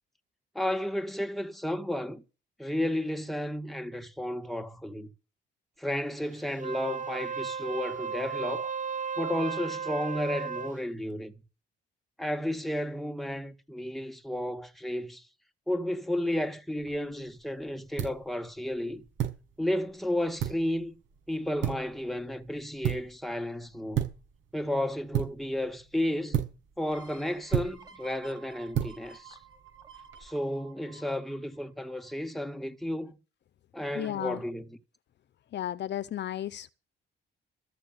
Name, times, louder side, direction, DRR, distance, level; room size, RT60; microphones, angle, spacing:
voice 1, 0.5-2.2 2.6-5.1 5.8-8.7 9.2-11.3 12.2-15.2 15.7-19.0 19.6-20.9 21.3-24.1 24.5-26.4 26.8-29.4 30.2-33.2 33.7-34.8, left 1 dB, ahead, 1.8 m, -32 dB
Wind instrument woodwind instrument, 6.5-10.8, right 6 dB, 40° right, 1.1 m, -35 dB
sound 1, 16.8-30.2, right 10 dB, 80° right, 6.3 m, -36 dB
sound 2, 26.9-32.4 32.8-32.9, right 5 dB, 20° right, 3.0 m, -53 dB
voice 2, 33.9-34.4 35.5-36.7, left 11 dB, 60° left, 0.8 m, -33 dB
14.0 x 6.6 x 9.1 m
cardioid pair, 90°, 20 cm